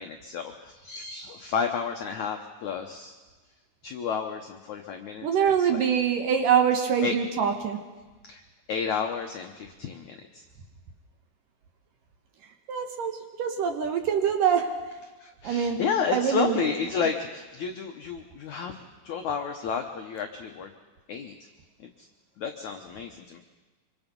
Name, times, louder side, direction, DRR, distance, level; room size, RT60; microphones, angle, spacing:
voice 1, 0.0-3.2 3.8-5.3 5.6-5.9 7.0-7.1 8.2-8.4 8.7-10.4 15.2-18.8 19.0-20.7 21.1-21.3 21.8-22.1 22.4-23.4, left 6 dB, 80° left, 4 dB, 1.7 m, -31 dB
voice 2, 5.2-7.8 12.7-14.7 15.4-15.8 16.1-16.7, right 7 dB, 65° right, 5 dB, 2.5 m, -24 dB
25.5 x 24.5 x 5.4 m, 1.3 s
omnidirectional pair, 5.0 m